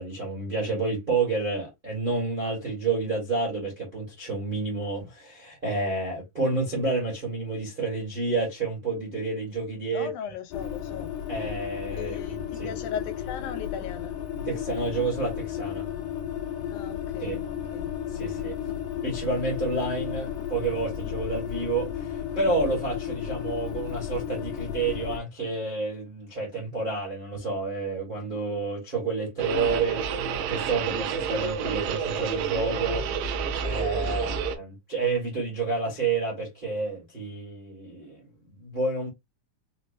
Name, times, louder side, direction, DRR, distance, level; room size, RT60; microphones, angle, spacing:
voice 1, 0.0-10.1 11.3-12.7 14.4-15.9 17.2-17.4 18.1-18.6 19.0-30.0 30.5-33.1 33.6-38.2 38.6-39.1, right 3 dB, 35° right, 0.8 m, -29 dB
voice 2, 9.9-11.1 11.9-14.2 16.7-18.4 34.0-34.4, left 8 dB, 85° left, 2.1 m, -38 dB
sound 1, 10.5-25.2, left 9 dB, 70° left, 1.6 m, -33 dB
sound 2, 29.4-34.6, right 6 dB, 80° right, 2.1 m, -29 dB
5.7 x 2.1 x 2.6 m
omnidirectional pair, 3.6 m